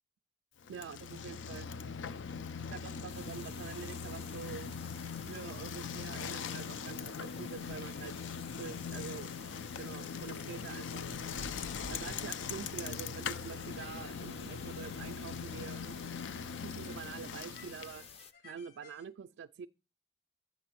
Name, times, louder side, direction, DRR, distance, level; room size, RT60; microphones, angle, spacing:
Bicycle, 0.6-18.2, left 6 dB, 90° left, 0.4 m, -41 dB
voice 1, 0.7-1.7 2.7-4.7 5.3-8.1 8.6-9.3 9.8-11.1 11.9-16.0 16.6-19.7, right 7 dB, 85° right, 0.3 m, -46 dB
sound 1, 3.1-18.3, left 6 dB, 30° left, 0.5 m, -54 dB
sound 2, 13.1-19.0, left 4 dB, 60° left, 1.5 m, -60 dB
7.3 x 6.7 x 4.5 m
head